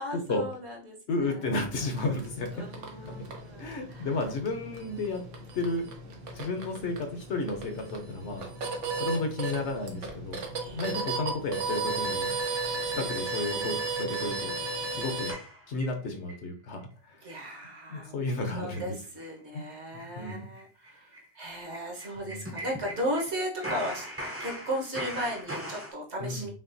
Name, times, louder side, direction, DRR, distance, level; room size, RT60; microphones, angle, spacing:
voice 1, 0.0-1.5 2.6-4.2 10.6-10.8 17.2-18.2 18.5-26.5, equal, 65° right, -1 dB, 1.4 m, -36 dB
voice 2, 1.1-2.6 3.0-3.2 3.6-5.2 5.5-5.8 6.3-8.4 9.0-10.4 10.7-12.4 12.9-14.6 14.9-15.3 15.7-17.2 17.9-19.0 19.9-20.5 22.2-22.6 26.2-26.5, left 2 dB, 70° left, 5 dB, 1.1 m, -32 dB
sound 1, 1.7-15.3, right 3 dB, 85° right, 1.2 m, -35 dB
sound 2, 15.3-16.4 16.8-16.9 17.3-17.5 17.8-17.9 18.2-18.4 18.7-18.9 19.2-19.3 19.7-23.3 23.6-25.9, equal, 15° right, 0.5 m, -40 dB
5.8 x 2.3 x 2.6 m, 0.38 s
omnidirectional pair, 1.2 m